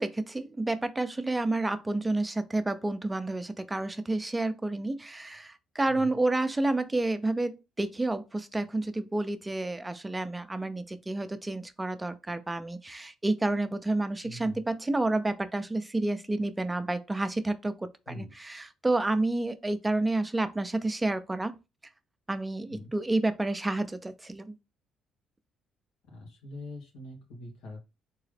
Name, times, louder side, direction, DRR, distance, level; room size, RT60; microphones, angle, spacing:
voice 1, 0.0-21.6 22.3-24.5, right 2 dB, 15° right, 0.4 m, -30 dB
voice 2, 14.2-14.6 18.1-18.3 22.7-22.9 26.1-27.9, left 1 dB, 90° left, 1.3 m, -43 dB
3.7 x 2.9 x 3.3 m
cardioid pair, 105°, 0 cm